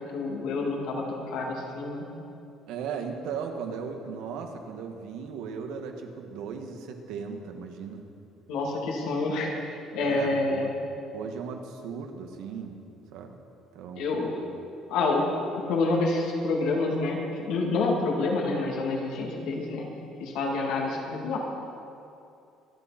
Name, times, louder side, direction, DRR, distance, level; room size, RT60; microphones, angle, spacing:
voice 1, 0.1-2.0 8.5-9.5 9.9-10.8 13.9-14.4 14.9-15.2 15.5-19.9 20.2-21.4, left 3 dB, 80° left, -1 dB, 2.7 m, -28 dB
voice 2, 2.7-8.0 10.0-10.7 11.1-12.8 13.1-13.4 13.7-14.3, right 6 dB, 85° right, 4 dB, 1.6 m, -37 dB
24.5 x 8.7 x 4.3 m, 2.6 s
cardioid pair, 130°, 0 cm